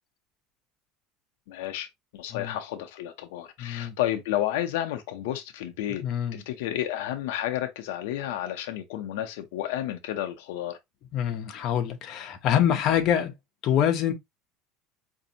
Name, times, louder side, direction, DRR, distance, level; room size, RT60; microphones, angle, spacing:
voice 1, 1.5-1.9 2.1-6.0 6.3-10.8, left 12 dB, 85° left, 0.6 m, -31 dB
voice 2, 3.6-4.0 6.0-6.4 11.1-13.3 13.6-14.1, left 9 dB, 45° left, 0.8 m, -25 dB
5.1 x 2.6 x 2.7 m
cardioid pair, 145°, 0 cm